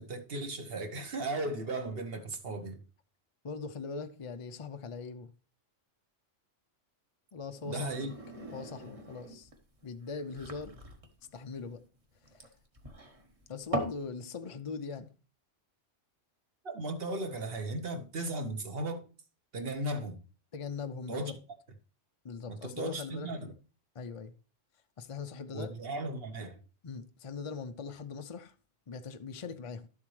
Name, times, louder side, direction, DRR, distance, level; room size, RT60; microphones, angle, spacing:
voice 1, 0.0-2.8 7.6-8.1 16.6-19.0 19.5-20.2 21.1-21.3 22.5-23.5 25.5-26.5, right 2 dB, 50° right, 1.3 m, -36 dB
voice 2, 3.4-5.3 7.3-8.1 8.5-9.5 9.8-10.8 11.3-11.8 12.3-12.5 13.5-15.1 20.5-21.3 22.2-23.3 23.9-24.3 25.0-25.7 26.8-28.5 28.9-29.9, left 5 dB, 50° left, 0.4 m, -41 dB
sound 1, 7.5-14.0, equal, 30° right, 1.3 m, -41 dB
11.5 x 7.2 x 3.2 m
omnidirectional pair, 1.3 m